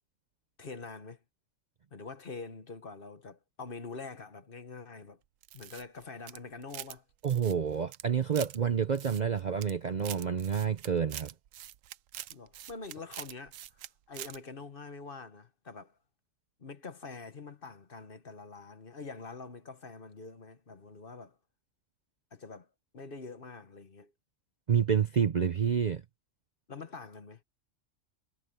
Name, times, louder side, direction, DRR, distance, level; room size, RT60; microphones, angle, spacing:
voice 1, 0.6-1.2 1.9-5.2 5.5-7.0 12.3-13.6 14.1-16.0 16.6-21.4 22.3-22.7 22.9-24.1 26.7-27.4, left 4 dB, 45° left, 1.4 m, -45 dB
sound 1, 5.4-7.0 7.2-8.6 8.9-9.7 10.0-13.9 14.1-14.4, right 13 dB, 85° right, 1.0 m, -45 dB
voice 2, 7.2-11.3 24.7-26.0, right 7 dB, 45° right, 0.6 m, -28 dB
omnidirectional pair, 1.3 m